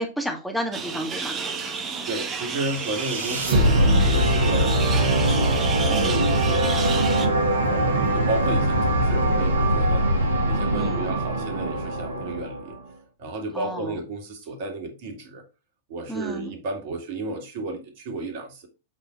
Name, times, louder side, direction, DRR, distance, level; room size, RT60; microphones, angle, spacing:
voice 1, 0.0-1.4 5.9-6.3 10.7-11.1 13.5-14.0 16.1-16.5, right 1 dB, ahead, 1.9 m, -31 dB
sound 1, 0.7-7.3, right 5 dB, 25° right, 1.5 m, -31 dB
voice 2, 2.1-10.1 10.5-12.7 13.2-15.4 15.9-18.7, right 2 dB, 50° right, 2.4 m, -32 dB
sound 2, 2.6-12.8, right 1 dB, 70° right, 1.9 m, -22 dB
8.1 x 4.3 x 4.6 m
figure-of-eight pair, 95°, 0 cm